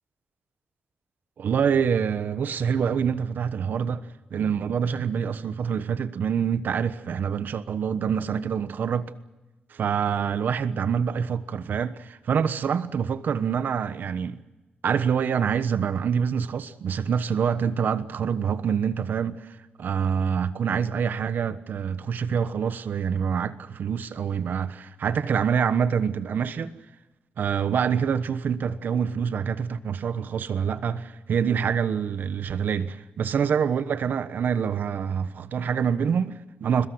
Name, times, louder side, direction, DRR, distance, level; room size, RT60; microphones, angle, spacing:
voice 1, 1.4-4.0 4.3-9.1 9.7-14.4 14.8-26.7 27.4-36.9, right 7 dB, 70° right, 1.2 m, -26 dB
22.0 x 21.5 x 7.9 m
wide cardioid pair, 130°, 3 cm